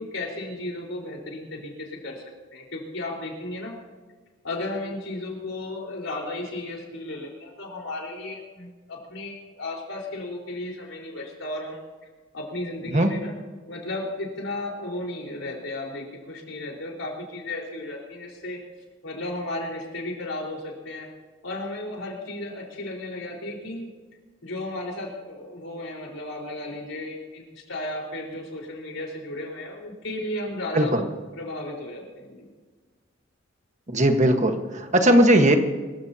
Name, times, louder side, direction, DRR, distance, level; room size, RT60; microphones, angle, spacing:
voice 1, 0.0-2.2 2.5-3.7 4.4-11.8 12.3-13.3 13.7-18.6 19.0-21.1 21.4-23.9 24.4-30.9 31.3-32.5, left 2 dB, 75° left, -1 dB, 4.6 m, -34 dB
voice 2, 30.7-31.0 33.9-35.6, right 1 dB, 40° right, 5 dB, 1.4 m, -18 dB
25.0 x 15.5 x 2.9 m, 1.4 s
head